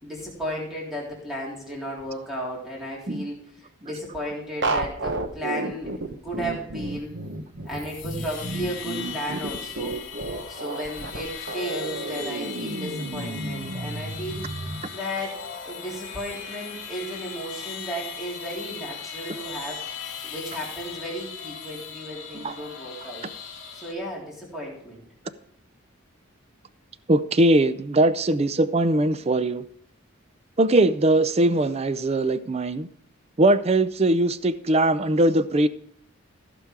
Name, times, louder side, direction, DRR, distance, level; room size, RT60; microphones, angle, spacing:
voice 1, 0.0-5.9 6.2-7.2 7.6-10.0 10.5-15.4 15.6-23.2 23.7-25.0, equal, ahead, 3.4 m, -34 dB
sound 1, 4.6-14.8, right 2 dB, 55° right, 1.0 m, -32 dB
sound 2, 7.7-23.9, left 6 dB, 60° left, 2.3 m, -38 dB
voice 2, 27.1-29.6 30.6-32.9 33.4-35.7, right 1 dB, 30° right, 0.4 m, -21 dB
15.0 x 6.9 x 4.7 m
head